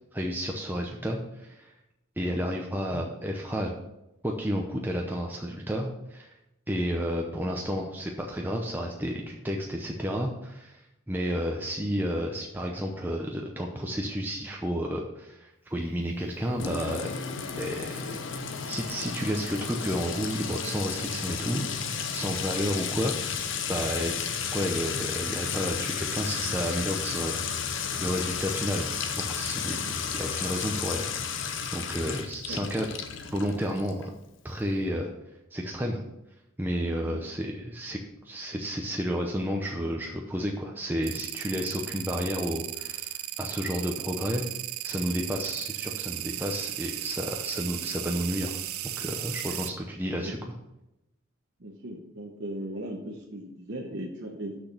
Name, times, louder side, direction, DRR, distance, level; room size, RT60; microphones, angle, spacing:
voice 1, 0.1-1.7 2.2-3.7 4.2-6.3 6.7-10.8 11.1-17.1 17.6-18.2 18.7-24.2 24.5-28.9 29.2-32.9 33.3-34.1 34.4-35.1 35.5-36.0 36.6-38.0 38.2-44.4 44.8-48.6 48.8-50.5, equal, 10° right, 0 dB, 0.6 m, -31 dB
Sink (filling or washing) / Trickle dribble / Fill (with liquid), 16.6-34.0, left 6 dB, 60° left, 0.7 m, -33 dB
sound 1, 41.0-49.7, right 14 dB, 85° right, 0.5 m, -35 dB
voice 2, 51.6-54.6, right 1 dB, 55° right, -1 dB, 0.9 m, -38 dB
6.4 x 6.0 x 6.6 m, 0.90 s
head